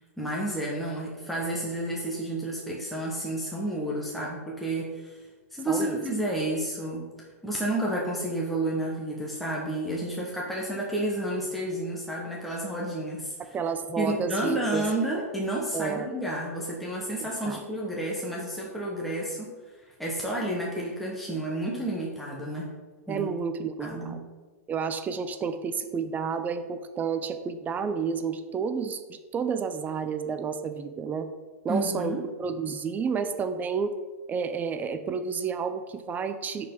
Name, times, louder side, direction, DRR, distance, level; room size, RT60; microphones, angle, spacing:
voice 1, 0.2-5.2 5.5-7.1 7.4-13.6 14.0-19.5 20.0-22.7 23.1-23.3 23.8-24.2 31.7-32.2, right 1 dB, ahead, -4 dB, 1.4 m, -31 dB
voice 2, 5.7-6.0 13.5-14.8 15.7-16.1 17.2-17.6 23.1-24.2 24.7-31.3 31.6-33.9 34.3-36.7, right 6 dB, 20° right, 9 dB, 0.5 m, -30 dB
10.0 x 4.7 x 3.9 m, 1.4 s
hypercardioid pair, 120°, 8 cm